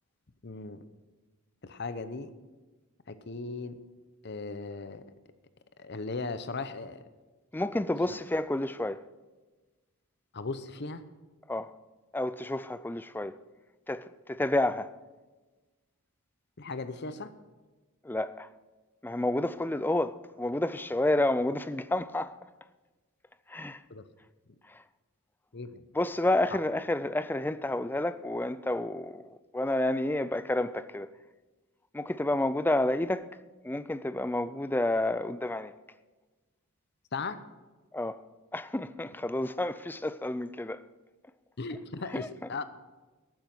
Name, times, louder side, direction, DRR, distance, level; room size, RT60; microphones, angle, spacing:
voice 1, 0.4-0.8 1.6-2.3 3.1-3.8 4.2-5.0 5.8-7.0 10.3-11.0 16.6-17.3 23.9-24.1 25.5-25.8 37.1-37.4 41.6-42.6, left 3 dB, 50° left, 0.8 m, -37 dB
voice 2, 7.5-9.0 11.5-11.7 12.1-13.4 13.9-14.9 18.0-18.5 19.0-22.3 23.5-23.8 24.7-24.8 25.9-31.1 31.9-33.3 33.6-35.7 37.9-38.2 38.5-40.8 42.1-42.3, left 1 dB, 10° left, 0.4 m, -30 dB
12.0 x 9.6 x 6.1 m
head